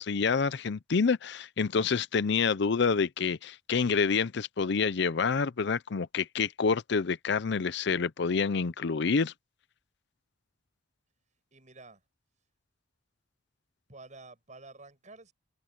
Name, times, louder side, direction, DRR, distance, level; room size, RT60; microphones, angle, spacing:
voice 1, 0.0-9.3, left 5 dB, 65° left, 0.6 m, -27 dB
voice 2, 11.5-12.0 13.9-15.3, right 3 dB, 40° right, 7.8 m, -50 dB
head